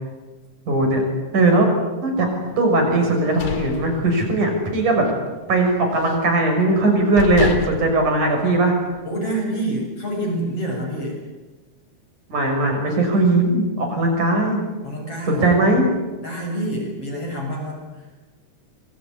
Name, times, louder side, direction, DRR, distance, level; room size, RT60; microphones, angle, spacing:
voice 1, 0.7-1.0 1.3-1.7 2.0-2.3 2.6-5.1 5.5-8.7 12.3-14.6 15.3-15.9, right 2 dB, 65° right, 3 dB, 8.2 m, -19 dB
sound 1, 3.1-4.6 5.0-5.2 5.6-6.3 6.8-6.9 7.2-9.0, left 5 dB, 65° left, 3.7 m, -30 dB
voice 2, 9.0-11.2 14.8-15.6 16.2-18.1, right 1 dB, 40° left, 0 dB, 9.1 m, -27 dB
27.0 x 22.5 x 9.9 m, 1.2 s
omnidirectional pair, 3.9 m